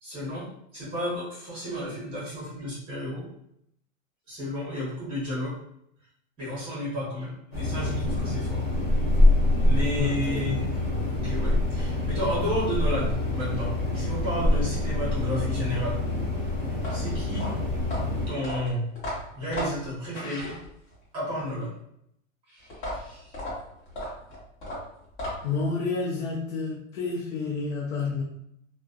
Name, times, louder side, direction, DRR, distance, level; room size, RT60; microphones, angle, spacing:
voice 1, 0.0-3.3 4.3-5.6 6.4-8.6 9.7-10.7 11.1-16.0 16.9-17.5 18.3-18.9 19.3-20.6 21.1-21.7 22.5-23.4, equal, 15° right, -7 dB, 0.9 m, -32 dB
sound 1, 7.5-18.3, left 1 dB, 15° left, 0.4 m, -25 dB
voice 2, 10.0-10.5 25.4-28.2, left 4 dB, 80° left, -2 dB, 0.7 m, -29 dB
sound 2, 16.7-21.0 22.7-25.7, left 1 dB, 40° left, 1.1 m, -35 dB
2.4 x 2.2 x 2.4 m, 0.73 s
supercardioid pair, 180°, 40 cm